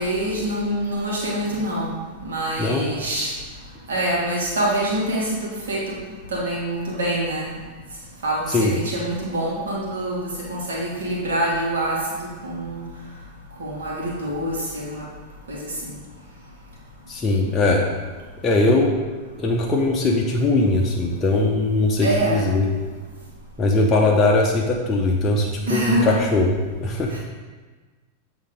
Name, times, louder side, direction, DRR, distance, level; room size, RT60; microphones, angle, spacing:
voice 1, 0.0-2.0 2.2-3.3 3.9-6.0 6.3-7.6 8.2-12.8 13.6-15.0 15.5-15.9 22.0-22.5 25.7-26.2 27.1-27.2, right 1 dB, 65° right, -4 dB, 2.0 m, -25 dB
voice 2, 17.1-17.8 18.4-18.9 19.4-22.7 23.6-26.5 26.8-27.1, left 2 dB, 20° left, -2 dB, 0.8 m, -20 dB
8.4 x 3.6 x 5.0 m, 1.4 s
figure-of-eight pair, 90°, 0 cm